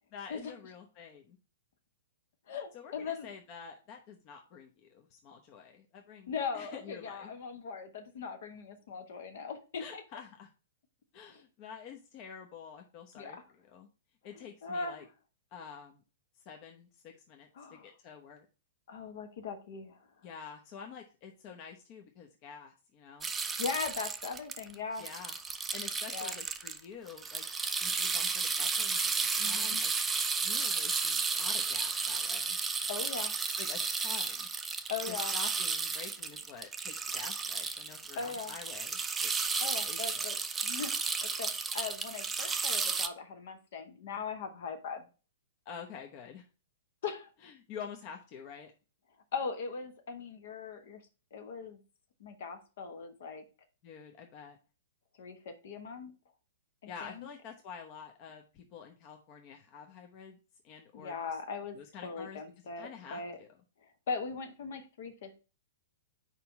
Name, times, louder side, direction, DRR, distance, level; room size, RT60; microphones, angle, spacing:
voice 1, 0.1-1.4 2.7-7.3 9.8-10.5 11.1-13.9 14.2-15.0 15.5-16.0 16.4-18.4 20.2-23.3 25.0-25.4 25.7-27.4 27.8-29.9 30.4-32.6 33.6-34.5 35.1-39.3 39.8-40.3 45.6-46.5 47.4-48.7 53.8-54.6 56.9-60.4 60.6-61.2 61.7-62.4 62.8-63.5, left 6 dB, 40° left, 2 dB, 1.0 m, -48 dB
voice 2, 2.5-3.3 6.3-10.0 11.3-11.4 13.2-13.4 14.3-15.1 17.6-17.9 18.9-20.0 23.5-25.1 26.1-26.3 29.4-29.8 32.9-33.3 34.9-35.3 38.2-38.5 39.6-40.4 40.6-40.9 41.4-45.1 47.0-47.3 49.3-51.0 51.3-51.8 52.2-53.4 55.2-56.1 56.8-57.3 60.9-61.8 62.0-63.4 64.1-65.4, left 5 dB, 55° left, 7 dB, 1.3 m, -39 dB
sound 1, 23.2-26.8 27.1-43.1, right 4 dB, 15° right, 0.5 m, -33 dB
4.8 x 4.3 x 5.3 m, 0.33 s
figure-of-eight pair, 110°, 0 cm